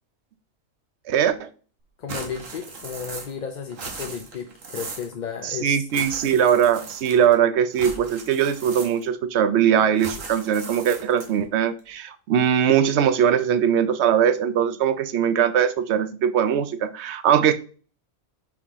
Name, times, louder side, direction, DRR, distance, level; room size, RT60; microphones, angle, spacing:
voice 1, 1.1-1.5 5.4-17.5, right 8 dB, 65° right, 12 dB, 0.9 m, -21 dB
voice 2, 2.0-5.9, left 7 dB, 50° left, 5 dB, 0.5 m, -33 dB
sound 1, 2.1-3.4 3.7-5.1 5.9-7.4 7.7-9.2 10.0-11.4, right 4 dB, 90° right, 1.6 m, -38 dB
5.6 x 4.7 x 3.6 m, 0.39 s
omnidirectional pair, 1.3 m